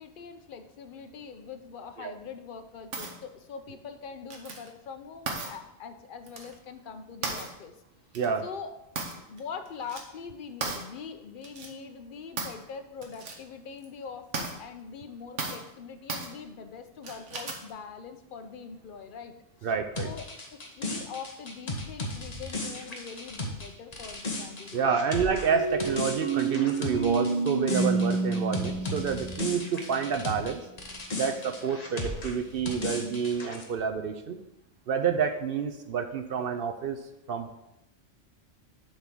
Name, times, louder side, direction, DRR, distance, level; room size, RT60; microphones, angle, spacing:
voice 1, 0.0-7.8 8.4-8.7 9.1-19.3 19.6-19.7 20.0-24.9, left 6 dB, 50° left, 7 dB, 0.8 m, -43 dB
sound 1, 2.9-3.2 4.3-4.7 5.3-5.5 6.3-6.5 7.2-7.5 8.1-8.3 9.0-9.4 9.7-10.0 10.6-10.9 11.4-11.7 12.4-12.6 13.0-13.4 13.8-13.9 14.3-14.5 15.4-15.7 16.1-16.3 17.0-17.7, right 3 dB, 80° right, 1.4 m, -35 dB
voice 2, 8.1-8.5 19.6-20.1 24.7-30.6 31.2-34.4 34.9-37.0 37.3-37.5, right 6 dB, 60° right, 7 dB, 0.7 m, -29 dB
sound 2, 20.0-30.5 30.8-33.6, left 2 dB, 35° left, 1.0 m, -36 dB
sound 3, 25.5-30.2, right 4 dB, 15° right, 1.0 m, -29 dB
7.3 x 3.7 x 6.0 m, 0.88 s
omnidirectional pair, 1.2 m